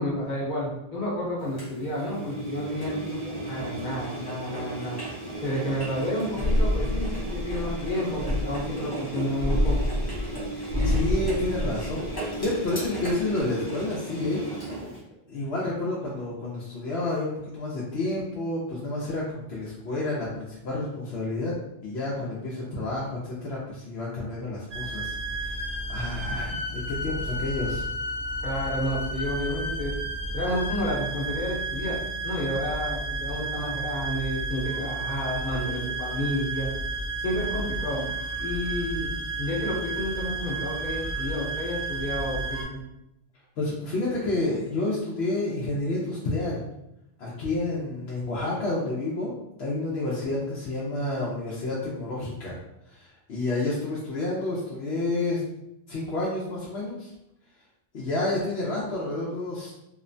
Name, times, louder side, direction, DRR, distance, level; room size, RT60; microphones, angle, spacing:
voice 1, 0.0-5.0 5.4-9.8 28.4-29.9 30.3-32.0 32.2-36.7 37.2-38.1 38.4-42.8, left 1 dB, 50° left, -5 dB, 1.0 m, -30 dB
Engine, 1.6-15.0, right 2 dB, 25° left, 0.7 m, -35 dB
sound 1, 6.4-8.8 9.4-12.4 12.9-13.4, left 1 dB, 80° right, 1.0 m, -27 dB
voice 2, 10.8-14.5 15.3-21.5 21.8-27.9 43.6-46.6 47.2-49.3 49.6-52.6 52.9-55.4 55.9-57.1 57.9-59.7, left 2 dB, 80° left, -6 dB, 0.8 m, -30 dB
sound 2, 24.7-42.6, right 2 dB, 55° right, 1.0 m, -32 dB
2.9 x 2.1 x 2.5 m, 0.85 s
omnidirectional pair, 1.1 m